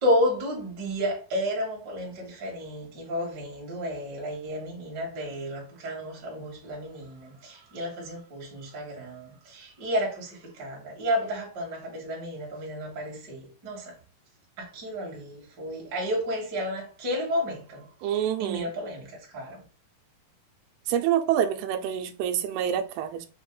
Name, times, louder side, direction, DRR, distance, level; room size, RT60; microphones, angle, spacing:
voice 1, 0.0-14.0 14.6-17.9 18.4-19.6, equal, 40° right, 1.5 m, -31 dB
voice 2, 18.0-18.7 20.9-23.3, right 10 dB, 90° right, 2.5 m, -27 dB
6.1 x 2.1 x 3.8 m
omnidirectional pair, 4.4 m